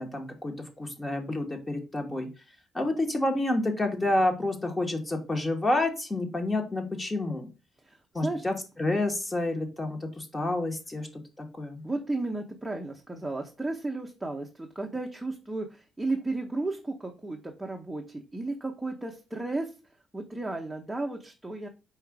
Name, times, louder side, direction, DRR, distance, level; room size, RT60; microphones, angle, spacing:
voice 1, 0.0-2.3 2.7-7.5 8.1-11.1 11.4-11.8, left 2 dB, 20° left, 3 dB, 1.1 m, -29 dB
voice 2, 11.8-19.7 20.1-21.7, right 2 dB, 10° right, 1 dB, 0.7 m, -33 dB
4.8 x 2.4 x 4.7 m, 0.30 s
cardioid pair, 90°, 0 cm